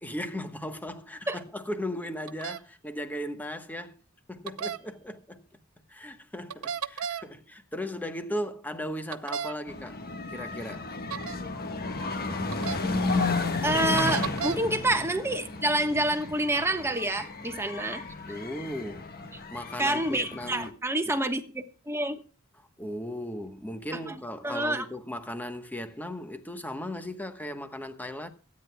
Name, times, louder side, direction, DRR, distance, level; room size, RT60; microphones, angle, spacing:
voice 1, 0.0-4.0 4.3-5.4 5.9-10.0 10.3-10.9 18.3-19.1 19.5-20.8 21.0-21.2 22.8-28.3, left 1 dB, 10° left, 1.1 m, -37 dB
sound 1, 2.3-2.6 4.5-4.8 6.5-7.2 9.1-9.5 11.1-11.4 12.5-12.8 14.0-14.6, right 7 dB, 80° right, 0.7 m, -33 dB
sound 2, 9.7-20.7, left 3 dB, 45° left, 1.4 m, -33 dB
voice 2, 13.6-18.0 19.8-22.2 24.1-24.8, right 1 dB, 10° right, 1.2 m, -28 dB
26.0 x 9.6 x 2.3 m
head